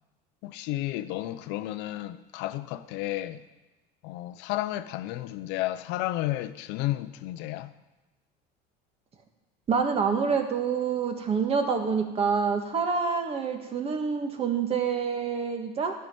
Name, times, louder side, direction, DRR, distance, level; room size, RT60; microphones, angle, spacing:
voice 1, 0.4-3.4 4.0-7.7, left 15 dB, 65° left, 0.8 m, -32 dB
voice 2, 9.7-15.9, right 5 dB, 30° right, 1.7 m, -27 dB
13.0 x 5.8 x 9.4 m
cardioid pair, 135°, 20 cm